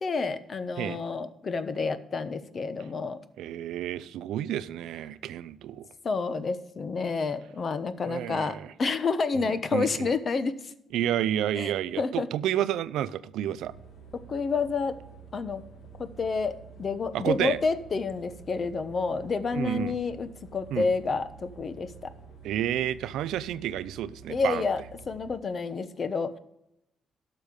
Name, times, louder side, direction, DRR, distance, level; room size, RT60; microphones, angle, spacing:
voice 1, 0.0-3.2 6.0-10.7 11.6-12.3 14.1-15.0 15.3-15.6 16.0-22.1 24.3-26.4, left 4 dB, 45° left, 12 dB, 1.0 m, -29 dB
voice 2, 3.4-5.9 8.1-8.7 9.4-10.1 10.9-13.7 17.1-17.6 19.5-19.9 20.7-20.9 22.4-24.6, right 11 dB, 85° right, 15 dB, 0.5 m, -30 dB
sound 1, 13.5-25.3, right 5 dB, 80° left, 2.0 m, -49 dB
12.0 x 6.7 x 5.2 m, 0.80 s
cardioid pair, 90°, 0 cm